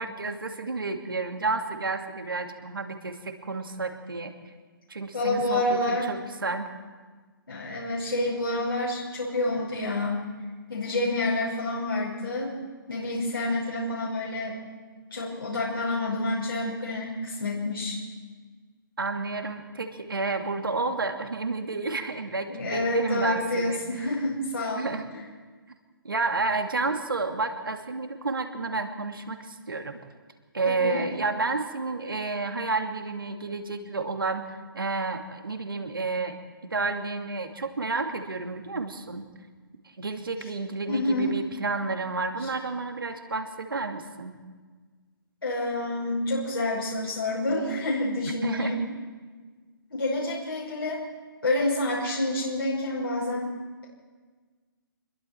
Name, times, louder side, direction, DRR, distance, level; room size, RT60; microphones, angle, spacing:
voice 1, 0.0-4.3 4.9-6.7 19.0-24.1 24.8-25.1 26.0-30.0 30.5-36.4 36.6-39.2 40.0-44.3 48.4-48.8, right 3 dB, 70° right, 5 dB, 2.4 m, -31 dB
voice 2, 5.1-6.1 7.5-10.2 10.7-12.5 12.9-14.6 15.1-18.0 22.5-24.9 30.6-31.0 40.9-41.3 42.4-42.5 45.4-48.8 49.9-51.0 51.4-53.5, left 2 dB, 75° left, -6 dB, 5.8 m, -28 dB
26.5 x 21.5 x 4.6 m, 1.5 s
figure-of-eight pair, 135°, 12 cm